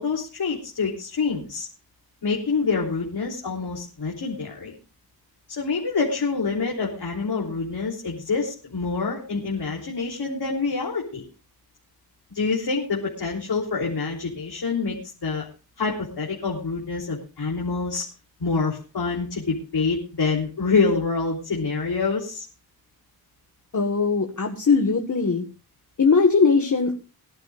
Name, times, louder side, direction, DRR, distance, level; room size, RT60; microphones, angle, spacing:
voice 1, 0.0-1.7 2.2-4.8 5.5-11.2 12.3-15.0 15.2-15.5 15.8-18.0 18.4-22.5, left 4 dB, 90° left, -3 dB, 3.6 m, -26 dB
voice 2, 23.7-25.4 26.0-26.9, left 4 dB, 50° left, 3 dB, 1.8 m, -20 dB
22.5 x 11.5 x 2.5 m, 0.34 s
wide cardioid pair, 75°, 38 cm